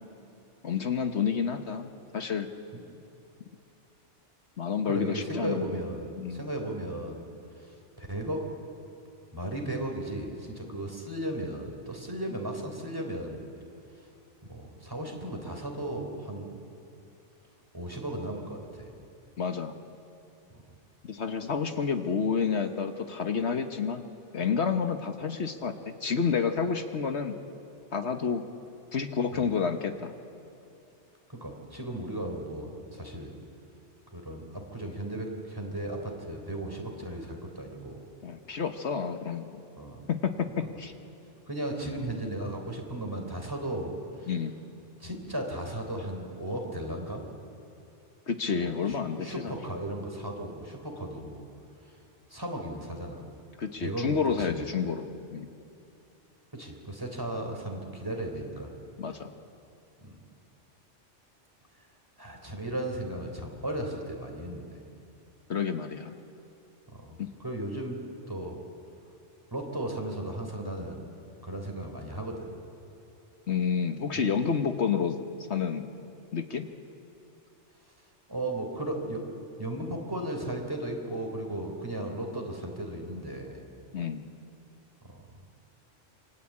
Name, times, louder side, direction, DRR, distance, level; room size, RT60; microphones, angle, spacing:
voice 1, 0.6-2.5 4.6-5.6 6.2-6.5 19.4-19.7 21.1-24.0 24.3-25.7 26.0-27.4 27.9-28.4 28.9-30.1 38.2-39.6 40.1-40.9 44.3-44.5 48.3-49.6 53.6-55.5 59.0-59.3 65.5-66.1 67.2-67.3 73.5-75.2 75.5-75.9 76.3-76.7 83.9-84.3, left 6 dB, 65° left, 7 dB, 1.5 m, -29 dB
voice 2, 4.9-7.2 7.6-7.7 8.0-8.5 9.3-13.4 14.5-16.5 17.7-18.9 29.4-29.5 31.3-33.3 34.1-38.0 39.8-40.0 41.5-43.9 44.2-44.3 45.0-47.2 48.5-51.4 52.3-53.2 53.8-54.7 56.5-58.7 60.0-60.2 62.2-64.8 66.9-68.0 68.3-68.6 69.5-71.1 71.4-72.5 74.1-74.2 78.3-79.2 79.6-83.6 85.1-85.2, right 1 dB, 20° right, 2 dB, 3.7 m, -35 dB
28.0 x 24.0 x 8.6 m, 2.7 s
omnidirectional pair, 1.2 m